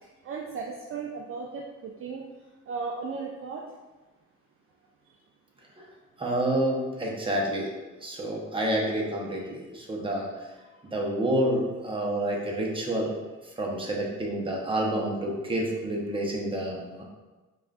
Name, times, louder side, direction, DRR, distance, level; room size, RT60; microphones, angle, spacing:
voice 1, 0.2-2.2 2.7-3.6, right 4 dB, 45° right, -1 dB, 0.4 m, -35 dB
voice 2, 6.2-7.7 8.0-10.3 10.9-13.1 13.6-17.0, right 1 dB, 15° right, -2 dB, 0.8 m, -28 dB
4.8 x 2.4 x 2.4 m, 1.2 s
cardioid pair, 90°, 30 cm